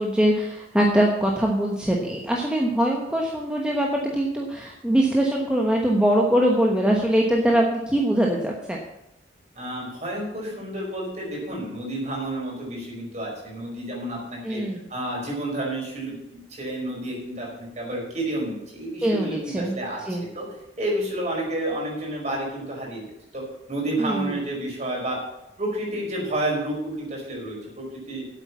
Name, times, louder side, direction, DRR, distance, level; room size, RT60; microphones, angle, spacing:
voice 1, 0.0-3.9 4.1-8.8 14.4-14.8 19.0-19.7 20.1-20.2 24.0-24.4, right 1 dB, 5° right, -1 dB, 1.1 m, -22 dB
voice 2, 9.5-14.6 14.9-16.2 16.5-20.0 20.3-20.4 20.8-23.0 23.3-23.4 23.7-25.2 25.6-28.2, right 1 dB, 35° right, -3 dB, 5.0 m, -30 dB
8.4 x 8.1 x 8.3 m, 0.88 s
head